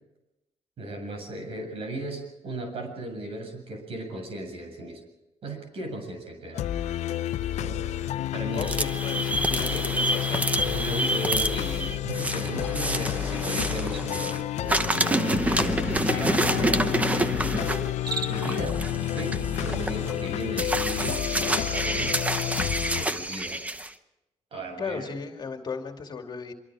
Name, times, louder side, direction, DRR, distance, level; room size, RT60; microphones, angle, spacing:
voice 1, 0.8-5.0 5.4-6.7 7.6-7.8 8.3-8.8 9.7-10.0 10.6-17.7 18.0-18.8 19.1-22.2 23.0-23.6 24.5-25.1, right 1 dB, 55° right, 4 dB, 7.4 m, -36 dB
sound 1, 6.5-23.0, left 12 dB, 80° left, 0.7 m, -30 dB
voice 2, 8.5-10.5 24.8-26.5, left 5 dB, 40° left, 4 dB, 2.6 m, -36 dB
sound 2, 8.5-14.4 14.7-23.9, right 1 dB, 10° right, 1.0 m, -28 dB
Cricket, 17.9-18.6, right 3 dB, 35° right, 2.4 m, -34 dB
25.5 x 24.0 x 5.0 m, 0.92 s
cardioid pair, 125°, 12 cm